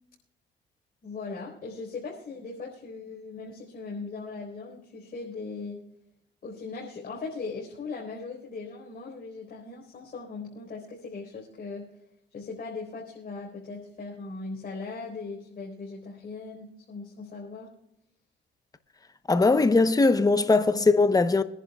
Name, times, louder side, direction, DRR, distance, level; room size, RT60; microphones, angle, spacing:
voice 1, 1.0-5.8 6.4-11.9 12.3-17.7 20.7-20.8, left 4 dB, 45° left, 4.4 m, -39 dB
voice 2, 19.3-21.4, left 3 dB, 20° left, 1.0 m, -20 dB
25.5 x 11.0 x 2.4 m
cardioid pair, 90°, 20 cm